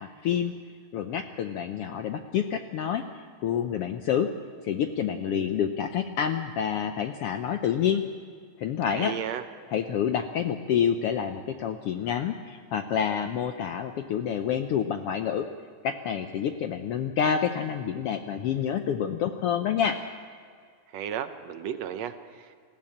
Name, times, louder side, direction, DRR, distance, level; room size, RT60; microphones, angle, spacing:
voice 1, 0.9-3.0 3.4-4.3 4.6-8.0 8.6-9.1 9.7-15.5 15.8-20.0, left 8 dB, 75° left, 7 dB, 1.4 m, -28 dB
voice 2, 8.9-9.4 20.9-22.5, right 9 dB, 70° right, 9 dB, 1.9 m, -34 dB
20.5 x 15.0 x 8.6 m, 2.1 s
omnidirectional pair, 3.4 m